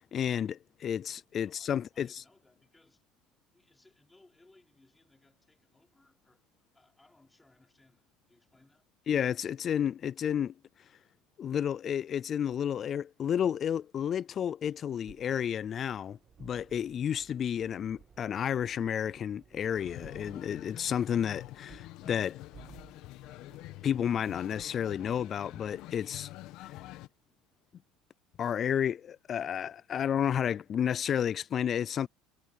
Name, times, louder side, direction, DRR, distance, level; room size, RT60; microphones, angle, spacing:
voice 1, 0.0-2.2 9.1-10.5 11.4-22.4 23.8-26.3 26.6-26.7 28.4-32.1, left 9 dB, 40° left, 0.3 m, -31 dB
voice 2, 1.4-3.1 3.5-8.9, left 2 dB, 10° left, 5.2 m, -65 dB
sound 1, 15.1-24.7, right 7 dB, 30° right, 1.7 m, -58 dB
sound 2, 19.8-27.1, left 16 dB, 65° left, 1.7 m, -47 dB
supercardioid pair, 105°, 0 cm